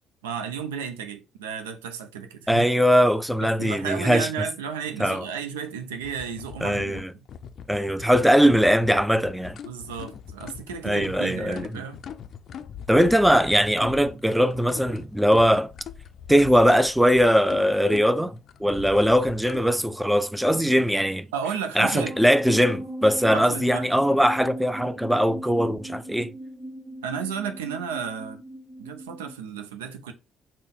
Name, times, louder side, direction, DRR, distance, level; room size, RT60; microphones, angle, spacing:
voice 1, 0.2-2.7 3.4-7.1 9.6-12.0 21.3-22.2 23.3-23.9 27.0-28.4 28.8-30.1, right 7 dB, 85° right, 0.4 m, -33 dB
voice 2, 2.5-4.3 5.0-5.2 6.6-7.1 7.7-9.6 10.8-11.7 12.9-15.7 16.3-21.3 21.8-26.3, equal, 5° right, 0.4 m, -20 dB
sound 1, 6.0-19.6, left 8 dB, 60° left, 0.4 m, -42 dB
sound 2, 22.0-29.4, right 1 dB, 55° right, 1.2 m, -38 dB
3.9 x 2.1 x 3.7 m
hypercardioid pair, 45°, 0 cm